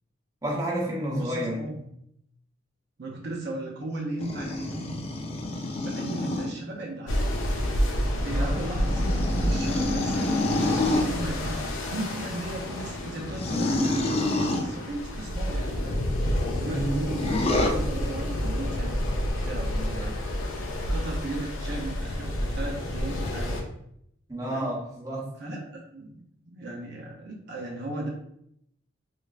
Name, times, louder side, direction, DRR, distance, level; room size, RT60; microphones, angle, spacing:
voice 1, 0.4-1.9 8.2-8.6 16.6-17.0 24.3-25.3, right 1 dB, 15° right, -4 dB, 0.8 m, -31 dB
voice 2, 1.1-1.7 3.0-5.0 5.8-7.3 8.2-16.3 16.5-19.0 19.4-20.2 20.9-23.6 24.5-24.7 25.4-28.1, right 2 dB, 55° right, -1 dB, 0.6 m, -36 dB
sound 1, 4.2-6.5 8.1-11.1 13.3-14.7 17.1-17.7, left 2 dB, 30° left, 0.4 m, -27 dB
sound 2, 7.1-23.6, equal, 80° left, 0.6 m, -29 dB
3.3 x 3.1 x 2.4 m, 0.74 s
head